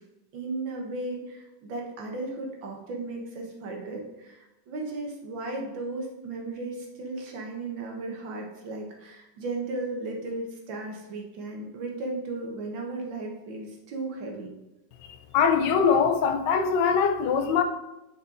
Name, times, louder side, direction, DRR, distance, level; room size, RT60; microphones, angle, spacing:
voice 1, 0.3-14.5, right 2 dB, 90° right, 1 dB, 1.9 m, -35 dB
voice 2, 15.3-17.6, left 6 dB, 75° left, 7 dB, 1.3 m, -22 dB
5.9 x 5.3 x 3.8 m, 0.96 s
omnidirectional pair, 2.0 m